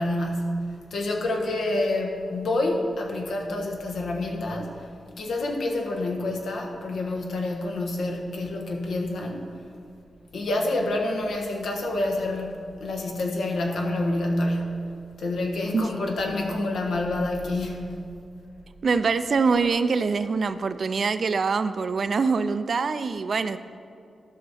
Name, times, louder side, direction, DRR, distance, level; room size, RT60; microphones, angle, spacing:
voice 1, 0.0-4.9 5.2-9.5 10.3-14.9 15.2-18.0, left 2 dB, 85° left, 1 dB, 1.3 m, -28 dB
voice 2, 18.8-23.6, right 4 dB, 55° right, 12 dB, 0.4 m, -24 dB
12.5 x 5.8 x 4.2 m, 2.5 s
wide cardioid pair, 115°, 0 cm